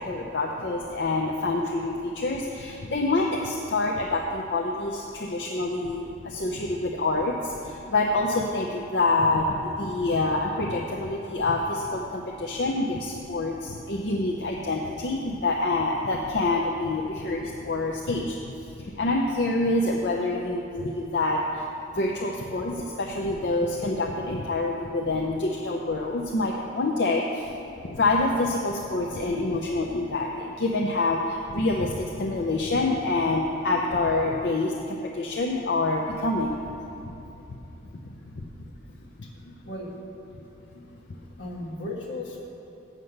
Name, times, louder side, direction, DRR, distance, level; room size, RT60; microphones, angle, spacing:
voice 1, 0.0-21.7 21.9-27.5 27.8-36.6 37.0-37.2 38.4-38.5 39.2-39.5 40.8-40.9 41.1-41.2, left 2 dB, 65° left, -1 dB, 0.6 m, -27 dB
voice 2, 41.4-42.5, left 2 dB, 80° left, -1 dB, 1.5 m, -35 dB
7.4 x 6.5 x 7.9 m, 2.8 s
head